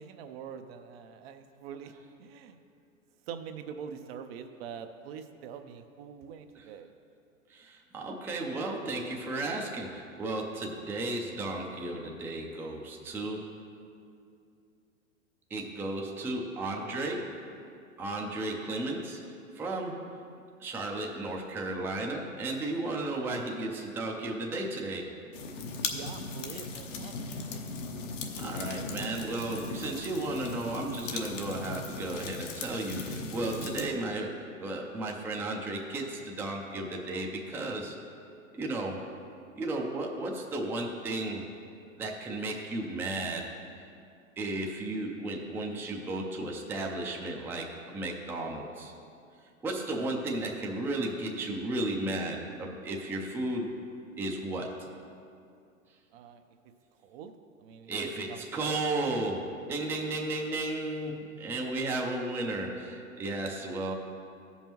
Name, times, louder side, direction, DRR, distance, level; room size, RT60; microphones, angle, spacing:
voice 1, 0.0-1.9 2.2-2.6 3.3-6.9 25.8-27.6 56.1-56.4 57.0-57.3 57.6-58.9, right 7 dB, 50° right, 7 dB, 0.6 m, -44 dB
voice 2, 7.5-13.5 15.5-17.4 18.0-19.2 19.5-20.1 20.6-25.1 28.4-38.0 38.5-39.1 39.6-41.4 42.0-43.5 44.4-48.9 49.6-53.7 54.2-54.7 57.9-63.9, right 2 dB, 5° right, 0 dB, 0.5 m, -34 dB
sound 1, 25.3-33.9, left 3 dB, 65° left, 1.1 m, -38 dB
15.0 x 5.5 x 3.0 m, 2.5 s
hypercardioid pair, 110°, 40 cm